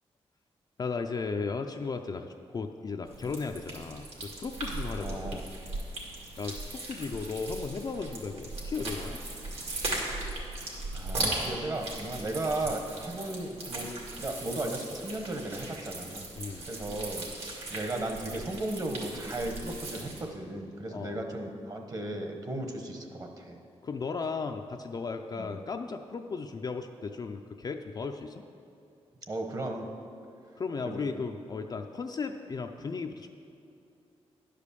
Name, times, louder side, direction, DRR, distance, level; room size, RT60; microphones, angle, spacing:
voice 1, 0.8-5.4 6.4-9.2 16.4-16.7 20.9-21.2 23.8-28.4 30.6-33.3, left 4 dB, 40° left, 5 dB, 0.4 m, -35 dB
sound 1, 3.1-20.2, right 2 dB, 70° right, 2.1 m, -38 dB
voice 2, 5.0-5.5 10.9-13.9 14.2-16.3 16.7-23.6 25.4-25.5 29.3-29.9 30.8-31.0, right 2 dB, 35° right, 3 dB, 1.1 m, -35 dB
10.5 x 5.1 x 6.8 m, 2.6 s
wide cardioid pair, 115°, 11 cm